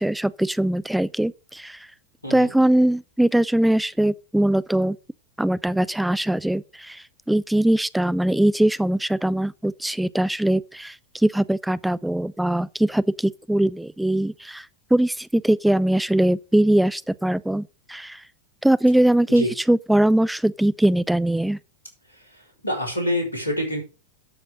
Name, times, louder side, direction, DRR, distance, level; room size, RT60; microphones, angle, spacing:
voice 1, 0.0-1.8 2.3-5.0 5.4-14.7 14.9-18.2 18.6-21.6, right 1 dB, 5° right, 0.4 m, -21 dB
voice 2, 22.6-23.8, left 1 dB, 80° left, 4.9 m, -26 dB
12.0 x 5.9 x 5.1 m
figure-of-eight pair, 90°, 0 cm